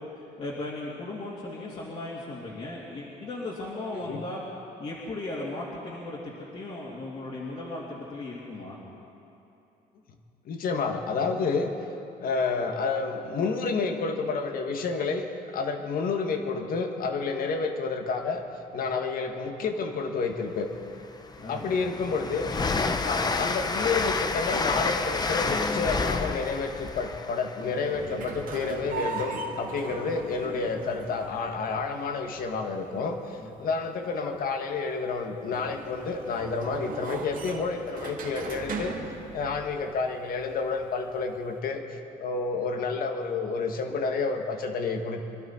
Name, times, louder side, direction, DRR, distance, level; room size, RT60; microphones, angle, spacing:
voice 1, 0.1-4.4 4.8-8.8 21.4-21.9 33.4-33.7, left 2 dB, 40° left, -6 dB, 2.7 m, -37 dB
voice 2, 10.4-11.7 12.2-15.3 15.5-18.4 18.7-20.7 21.5-22.5 23.0-38.9 39.3-45.2, left 4 dB, 60° left, 5 dB, 1.6 m, -30 dB
Train, 20.4-20.5 21.0-28.7, left 3 dB, 25° left, 0.8 m, -29 dB
sound 1, 24.5-41.6, right 4 dB, 55° right, 2.0 m, -40 dB
25.0 x 12.5 x 4.5 m, 2.9 s
cardioid pair, 110°, 17 cm